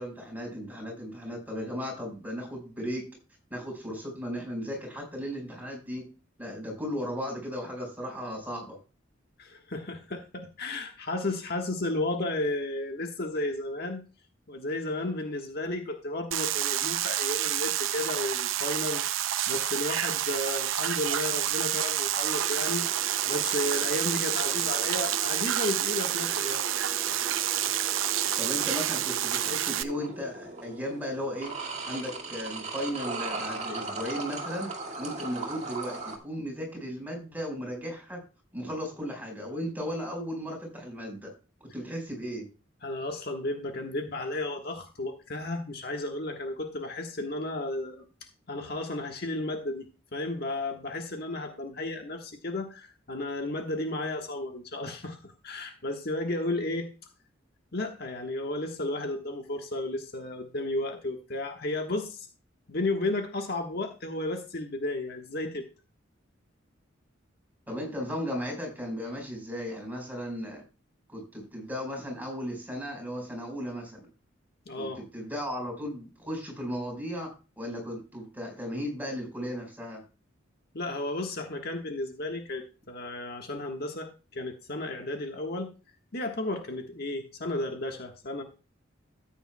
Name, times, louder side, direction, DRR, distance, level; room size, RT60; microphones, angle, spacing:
voice 1, 0.0-3.1 3.5-6.0 6.4-8.8 28.4-31.5 31.8-34.7 35.0-38.2 38.5-41.3 41.6-42.5 67.7-70.6 71.1-74.1 74.8-80.0, equal, 10° right, 1 dB, 4.8 m, -36 dB
voice 2, 9.4-14.0 14.5-26.6 42.8-48.1 48.5-49.9 50.1-56.9 57.7-62.3 62.7-65.6 74.6-75.0 80.7-85.7 86.1-88.4, left 2 dB, 55° left, 4 dB, 1.5 m, -33 dB
sound 1, 16.3-29.8, right 12 dB, 85° right, 0.6 m, -28 dB
sound 2, 22.3-36.2, right 2 dB, 35° right, 2.0 m, -39 dB
13.5 x 9.1 x 2.3 m, 0.32 s
head